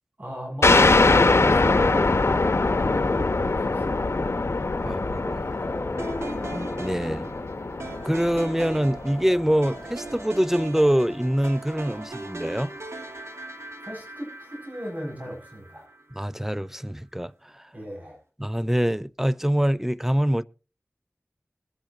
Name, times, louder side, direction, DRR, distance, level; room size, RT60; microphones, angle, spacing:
voice 1, 0.2-2.1 2.5-4.2 13.8-15.9 17.7-18.2, equal, 35° right, 7.4 m, -36 dB
sound 1, 0.6-9.8, left 3 dB, 80° left, 1.0 m, -23 dB
voice 2, 4.8-5.5 6.8-7.3 8.1-12.7 16.1-17.6 18.4-20.4, equal, 10° right, 0.6 m, -24 dB
sound 2, 5.5-8.8, left 1 dB, 35° left, 2.7 m, -38 dB
sound 3, 6.0-16.2, right 2 dB, 85° right, 2.7 m, -39 dB
21.0 x 10.5 x 2.9 m
wide cardioid pair, 45°, 5 cm